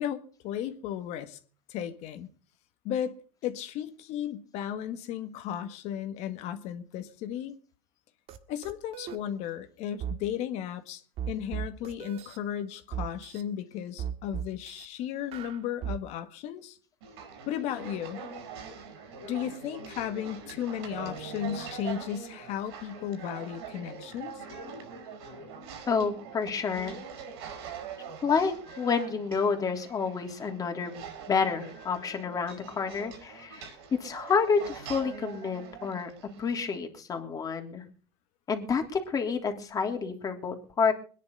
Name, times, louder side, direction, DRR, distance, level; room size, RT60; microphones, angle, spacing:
voice 1, 0.0-1.4 1.7-2.3 2.8-3.2 3.4-7.5 8.5-16.8 17.5-18.2 19.2-24.4, left 10 dB, 55° left, 1.7 m, -35 dB
sound 1, 8.3-8.4 8.6-9.2 10.0-10.2 11.2-12.4 12.9-13.4 14.0-14.9 15.3-16.0, right 8 dB, 50° right, 1.7 m, -36 dB
sound 2, 17.0-36.7, right 6 dB, 80° right, 5.5 m, -43 dB
voice 2, 25.9-27.0 28.2-36.1 36.4-37.8 38.5-40.9, left 5 dB, 25° left, 3.2 m, -29 dB
21.5 x 10.5 x 5.5 m
supercardioid pair, 120°, 13 cm